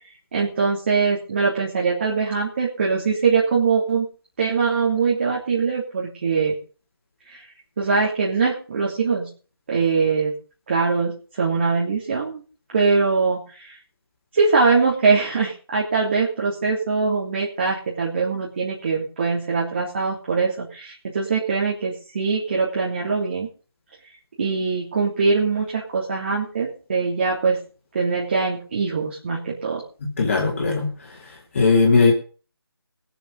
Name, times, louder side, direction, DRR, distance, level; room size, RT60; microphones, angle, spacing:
voice 1, 0.3-4.1 4.4-6.6 7.3-7.4 7.8-9.3 9.7-10.3 10.7-12.4 12.7-13.7 14.3-23.5 24.4-27.6 27.9-29.8, right 4 dB, 30° right, -4 dB, 3.1 m, -22 dB
voice 2, 30.0-31.2 31.5-32.1, left 4 dB, 30° left, -1 dB, 2.9 m, -19 dB
21.0 x 7.0 x 5.3 m, 0.38 s
figure-of-eight pair, 160°, 13 cm